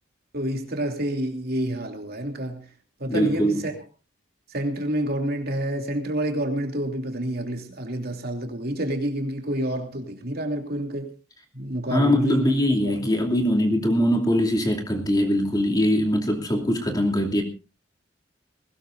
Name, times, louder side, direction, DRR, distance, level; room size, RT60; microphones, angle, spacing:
voice 1, 0.3-2.6 3.0-3.7 4.5-11.1 11.5-12.5, right 1 dB, 50° right, 3.0 m, -28 dB
voice 2, 3.1-3.7 11.9-17.4, equal, 20° left, 2.7 m, -22 dB
21.0 x 18.5 x 2.6 m
head